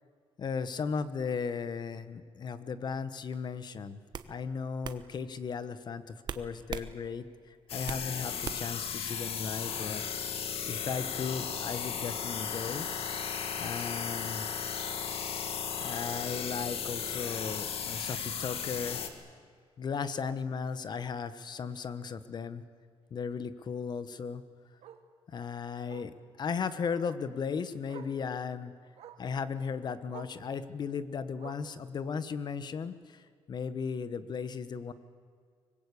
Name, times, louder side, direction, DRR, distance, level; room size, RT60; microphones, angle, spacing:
voice 1, 0.4-4.0 4.3-7.2 7.7-10.3 10.7-12.9 13.6-14.4 15.8-19.0 19.8-22.6 23.1-24.4 25.3-28.7 29.2-33.2 33.5-34.9, left 6 dB, 40° left, 13 dB, 1.2 m, -36 dB
sound 1, 3.3-3.6 4.1-4.3 4.8-5.0 6.3-6.9 7.3-8.1 8.4-8.8, right 7 dB, 45° right, 1.1 m, -39 dB
sound 2, 7.7-19.1, left 7 dB, 65° left, 2.2 m, -35 dB
Bark, 19.4-19.5 19.8-19.9 21.3-21.4 23.9-24.0 24.8-25.1 25.9-26.2 27.4-27.5 27.9-28.2 29.0-29.3 30.1-30.4 31.4-31.8 32.8-32.9, right 9 dB, 85° right, 1.7 m, -50 dB
24.5 x 21.0 x 8.5 m, 2.1 s
cardioid pair, 150°, 11 cm